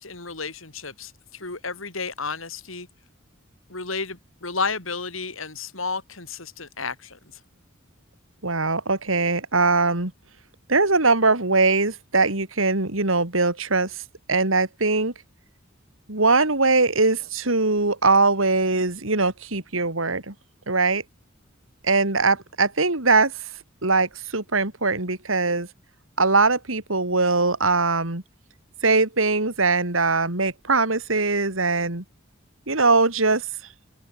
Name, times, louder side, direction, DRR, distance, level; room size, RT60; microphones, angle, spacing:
voice 1, 0.0-2.9 3.7-7.2, left 4 dB, 85° left, 6.2 m, -32 dB
voice 2, 8.4-10.1 10.7-14.0 14.3-15.1 16.1-20.3 20.7-21.0 21.8-23.3 23.8-25.7 26.2-28.2 28.8-32.0 32.7-33.5, right 3 dB, 80° right, 3.4 m, -21 dB
open air
head